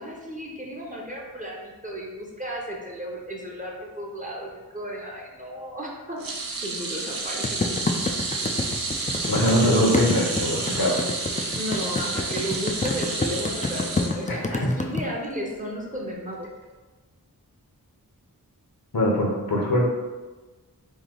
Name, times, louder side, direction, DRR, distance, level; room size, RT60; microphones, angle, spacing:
voice 1, 0.0-8.1 11.5-16.5, equal, 20° right, -2 dB, 0.7 m, -34 dB
sound 1, 6.2-14.7 15.0-15.3 16.4-16.5, right 3 dB, 70° right, 0.7 m, -30 dB
sound 2, 7.4-15.0, left 3 dB, 20° left, 0.3 m, -27 dB
voice 2, 9.3-11.0 14.3-14.7 18.9-19.9, equal, 70° left, -2 dB, 0.9 m, -22 dB
3.1 x 2.7 x 3.8 m, 1.2 s
wide cardioid pair, 55°, 37 cm